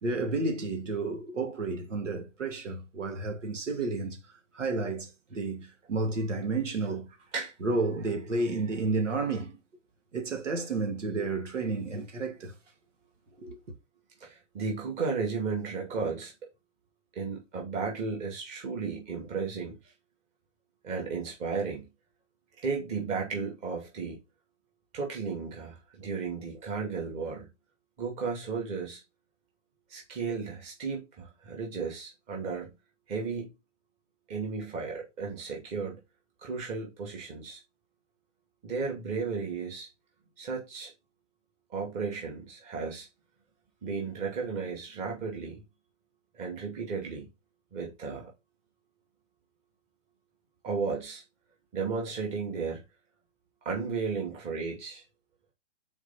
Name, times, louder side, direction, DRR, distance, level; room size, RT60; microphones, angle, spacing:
voice 1, 0.0-4.2 4.5-7.1 7.6-9.6 10.1-12.5 13.4-13.6, right 3 dB, 75° right, 2.1 m, -31 dB
voice 2, 14.2-16.3 17.1-19.8 20.8-21.8 22.6-24.2 24.9-27.5 28.0-29.0 29.9-32.7 33.1-33.5 34.3-36.0 36.4-37.6 38.6-39.9 40.4-40.9 41.7-43.1 43.8-45.6 46.3-47.3 47.7-48.3 50.6-51.2 51.7-52.8 53.6-55.0, right 5 dB, 20° right, 2.4 m, -34 dB
4.9 x 4.5 x 5.4 m
hypercardioid pair, 155°, 37 cm